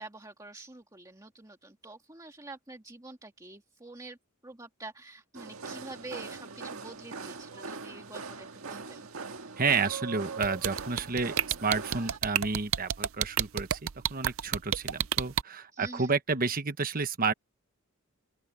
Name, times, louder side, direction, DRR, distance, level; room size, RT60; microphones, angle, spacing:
voice 1, 0.0-4.2 4.4-9.1 15.7-16.1, right 2 dB, 15° right, 1.9 m, -47 dB
sound 1, 5.3-12.2, right 4 dB, 90° right, 1.6 m, -41 dB
voice 2, 9.6-13.8 14.1-17.3, right 4 dB, 45° right, 1.2 m, -30 dB
sound 2, 10.4-15.4, right 10 dB, 70° right, 0.5 m, -28 dB
open air
head